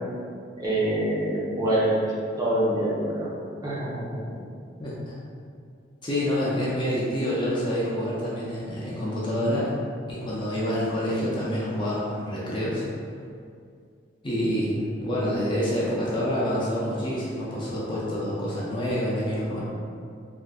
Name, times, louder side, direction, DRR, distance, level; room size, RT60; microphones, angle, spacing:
voice 1, 0.6-1.9 2.4-3.3 3.6-4.4, right 1 dB, 20° right, -8 dB, 0.7 m, -25 dB
voice 2, 4.8-5.1 6.0-9.7 10.1-12.8 14.2-19.6, equal, 25° left, -7 dB, 0.5 m, -27 dB
3.4 x 2.6 x 2.4 m, 2.3 s
head